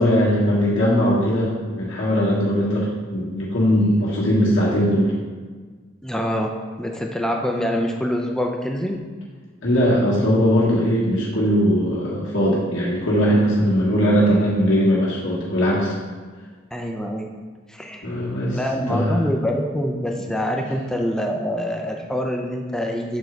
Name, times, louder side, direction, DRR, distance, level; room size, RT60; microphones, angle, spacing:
voice 1, 0.0-5.1 9.6-15.9 18.0-18.6 18.9-19.2, equal, 80° left, -6 dB, 1.6 m, -19 dB
voice 2, 6.0-6.5 6.8-9.0 13.5-13.7 16.7-17.3 17.7-18.1 18.5-23.2, equal, 5° left, 1 dB, 0.5 m, -25 dB
7.0 x 3.9 x 4.6 m, 1.5 s
head